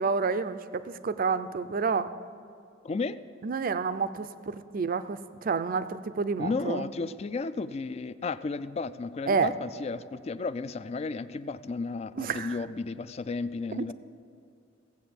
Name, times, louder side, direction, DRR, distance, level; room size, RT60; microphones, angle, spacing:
voice 1, 0.0-2.1 3.4-6.9 9.3-9.5 12.2-12.5 13.7-13.9, right 5 dB, 45° right, 13 dB, 0.4 m, -29 dB
voice 2, 2.8-3.2 6.4-13.9, left 4 dB, 35° left, 15 dB, 0.3 m, -33 dB
16.0 x 8.0 x 7.0 m, 2.4 s
head